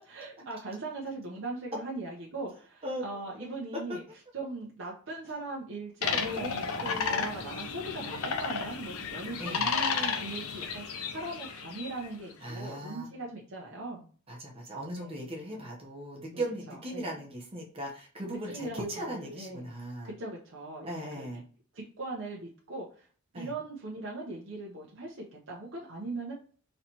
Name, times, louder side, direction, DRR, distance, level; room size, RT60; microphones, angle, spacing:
voice 1, 0.0-4.0 4.3-10.8 11.1-14.1 15.0-15.1 16.3-17.2 18.3-19.6 20.0-21.3 21.7-23.1 23.3-26.3, right 2 dB, 60° right, -3 dB, 0.8 m, -40 dB
voice 2, 2.8-3.2 6.1-6.5 6.8-7.3 9.4-9.7 12.4-13.1 14.3-20.1 20.8-21.4 23.3-23.5, right 1 dB, 25° right, -2 dB, 0.9 m, -38 dB
sound 1, 6.0-12.1, left 5 dB, 90° left, 0.6 m, -33 dB
4.1 x 3.2 x 2.9 m, 0.42 s
head